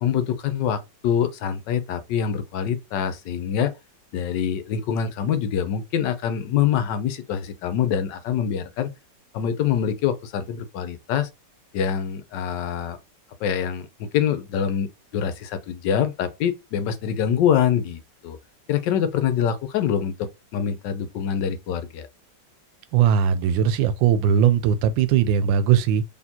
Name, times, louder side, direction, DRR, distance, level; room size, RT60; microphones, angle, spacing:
voice 1, 0.0-3.7 4.1-8.9 9.3-11.3 11.7-13.0 13.4-18.4 18.7-22.1, left 8 dB, 75° left, 1.3 m, -25 dB
voice 2, 22.9-26.0, right 8 dB, 90° right, 1.3 m, -19 dB
4.2 x 3.2 x 2.8 m
omnidirectional pair, 2.0 m